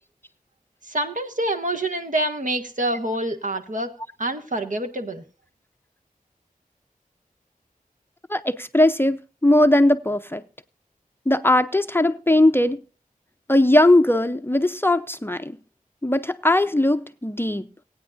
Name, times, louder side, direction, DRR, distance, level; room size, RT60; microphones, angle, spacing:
voice 1, 0.9-3.9 4.2-5.2, right 1 dB, 60° right, 1.6 m, -26 dB
voice 2, 8.3-10.4 11.3-12.8 13.5-15.6 16.0-17.7, left 1 dB, 15° left, 0.6 m, -19 dB
19.0 x 9.3 x 2.5 m
wide cardioid pair, 75°, 15 cm